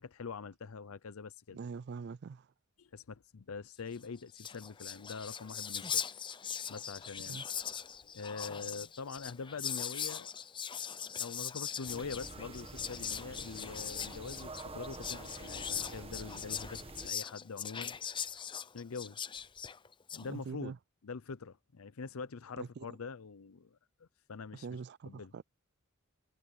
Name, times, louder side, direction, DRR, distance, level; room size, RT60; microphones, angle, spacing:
voice 1, 0.0-1.6 2.8-6.0 6.7-7.4 8.0-10.3 11.2-18.0 18.7-19.2 20.1-20.7 21.0-24.7 25.1-25.3, left 5 dB, 80° left, 0.6 m, -44 dB
voice 2, 1.5-2.5 7.3-7.4 20.2-20.8 22.6-22.9 24.5-25.4, right 5 dB, 50° right, 0.3 m, -43 dB
Whispering, 4.0-4.1 4.3-20.3, left 8 dB, 25° left, 0.6 m, -40 dB
sound 1, 11.9-17.1, right 2 dB, 25° right, 1.4 m, -47 dB
head